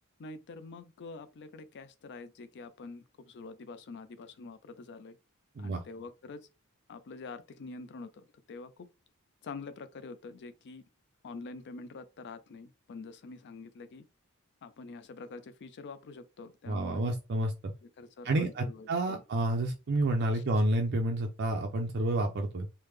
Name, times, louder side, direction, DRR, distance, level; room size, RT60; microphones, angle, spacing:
voice 1, 0.2-5.2 5.6-6.5 6.9-8.9 9.4-10.8 11.2-14.1 14.6-17.1 18.0-19.2 20.3-20.4, left 4 dB, 50° left, 0.4 m, -46 dB
voice 2, 16.7-17.5 18.2-22.7, right 1 dB, 50° right, 0.4 m, -29 dB
3.3 x 2.1 x 3.2 m
head